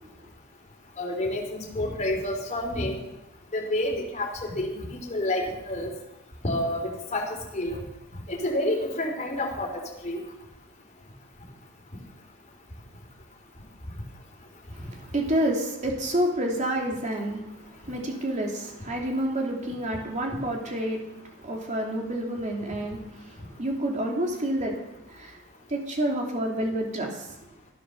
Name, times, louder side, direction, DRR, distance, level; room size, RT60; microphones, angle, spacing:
voice 1, 1.0-3.0 3.5-4.3 4.5-5.9 6.4-7.3 7.5-7.8 8.3-9.7 10.0-10.2, left 1 dB, 30° left, -1 dB, 3.9 m, -28 dB
voice 2, 14.7-24.8 25.1-25.4 25.7-27.3, right 1 dB, 35° right, 0 dB, 2.9 m, -29 dB
15.5 x 10.0 x 7.0 m, 0.91 s
head